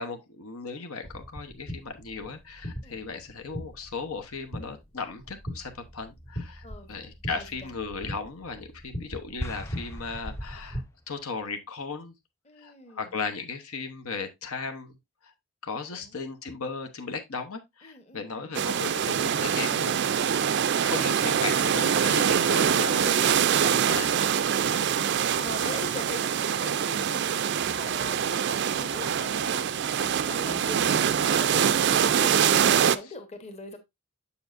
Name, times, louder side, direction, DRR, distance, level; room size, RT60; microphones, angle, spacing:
voice 1, 0.0-12.1 12.6-15.0 15.2-15.3 15.6-20.4 20.8-24.2 24.5-24.7 25.6-25.7 30.5-30.6, left 4 dB, 75° left, 1.0 m, -36 dB
sound 1, 1.0-10.8, equal, 60° left, 2.2 m, -40 dB
voice 2, 6.6-6.9 7.3-7.7 12.4-13.2 15.9-16.2 17.8-18.5 22.7-33.8, left 2 dB, 30° left, 1.1 m, -43 dB
sound 2, 9.4-11.0, equal, 10° left, 0.4 m, -39 dB
sound 3, 18.5-33.0, right 8 dB, 50° right, 0.4 m, -24 dB
7.0 x 7.0 x 2.6 m
head